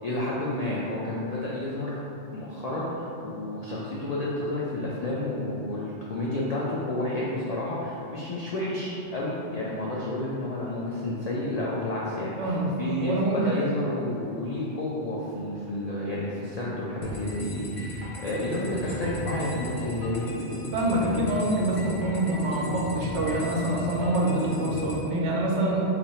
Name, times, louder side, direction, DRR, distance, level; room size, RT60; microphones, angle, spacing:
voice 1, 0.0-20.3, left 1 dB, 90° left, -6 dB, 0.3 m, -31 dB
voice 2, 12.4-13.6 20.7-25.8, right 1 dB, 70° right, -3 dB, 0.9 m, -26 dB
sound 1, 17.0-25.0, equal, 60° left, 1.0 m, -36 dB
2.7 x 2.5 x 4.2 m, 2.7 s
omnidirectional pair, 1.3 m